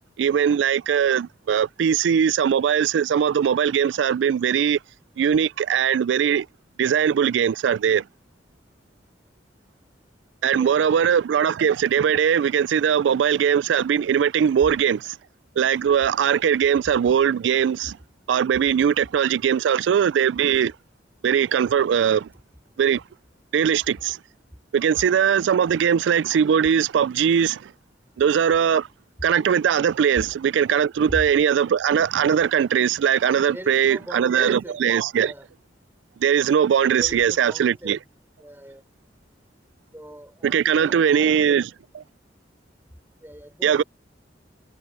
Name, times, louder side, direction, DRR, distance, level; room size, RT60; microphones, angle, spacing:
voice 1, 0.2-4.8 5.2-6.5 6.8-8.0 10.4-15.2 15.6-18.0 18.3-20.7 21.2-22.3 22.8-23.0 23.5-24.2 24.7-27.7 28.2-28.9 29.2-35.3 36.2-38.0 40.4-41.7 43.6-43.8, right 8 dB, 90° right, 0.3 m, -20 dB
voice 2, 10.5-11.1 15.6-15.9 22.3-22.4 30.1-30.3 31.0-31.2 33.4-34.8 35.1-35.5 37.0-38.0 38.4-38.8 39.9-41.6 43.2-43.8, equal, 10° right, 5.7 m, -39 dB
head